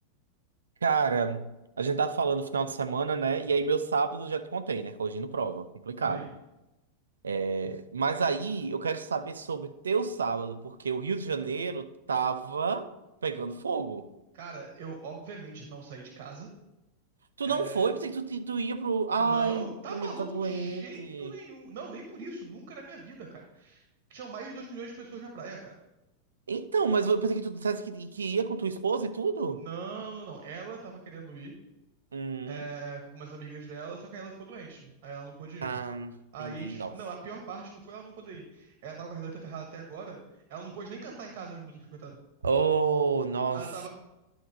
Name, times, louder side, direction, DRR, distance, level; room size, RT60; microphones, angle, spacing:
voice 1, 0.8-1.5 1.8-6.3 7.2-12.9 13.2-14.1 17.4-21.3 26.5-29.6 32.1-32.6 35.6-36.9 42.4-43.7, right 5 dB, 70° right, 0.6 m, -29 dB
voice 2, 14.3-16.5 17.4-17.8 19.2-23.8 24.1-25.7 29.6-31.5 32.4-35.7 36.3-40.2 40.5-42.2 43.5-43.9, right 4 dB, 45° right, 1.3 m, -41 dB
11.0 x 3.9 x 5.2 m
figure-of-eight pair, 90°, 0 cm